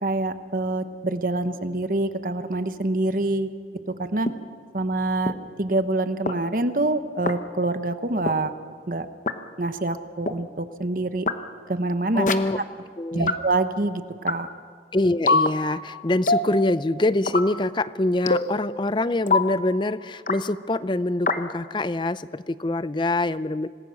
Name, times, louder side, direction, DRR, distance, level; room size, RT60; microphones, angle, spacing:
voice 1, 0.0-3.5 4.0-4.3 4.7-8.5 8.9-9.1 9.6-11.3 11.7-12.3 13.1-14.5, right 2 dB, 50° right, 9 dB, 1.1 m, -26 dB
sound 1, 4.3-4.4 5.3-5.4 6.3-6.4 7.3-7.4 8.3-8.4 9.3-9.4 10.3-10.4 11.3-11.4 12.3-12.4 13.3-13.4 14.3-14.4 15.3-15.5 16.3-16.5 17.3-17.5 18.3-18.5 19.3-19.5 20.3-20.4 21.3-21.4, left 3 dB, 45° left, 1.0 m, -21 dB
voice 2, 12.1-12.6 13.0-13.3 14.9-23.7, left 2 dB, 25° left, 15 dB, 0.5 m, -24 dB
26.5 x 19.5 x 6.4 m, 2.1 s
head